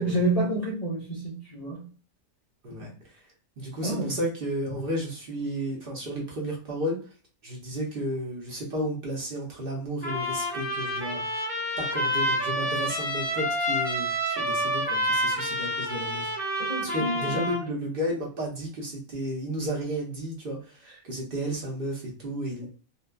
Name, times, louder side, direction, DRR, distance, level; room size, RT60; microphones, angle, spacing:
voice 1, 0.0-1.9 3.8-4.2 16.7-17.5, right 1 dB, 55° left, 0.4 m, -28 dB
voice 2, 2.6-3.2 3.6-7.0 7.4-11.2 11.8-14.1 14.4-22.7, right 1 dB, 50° right, 0.8 m, -33 dB
Trumpet, 10.0-17.6, equal, 10° right, 0.7 m, -28 dB
2.7 x 2.2 x 2.2 m
omnidirectional pair, 1.4 m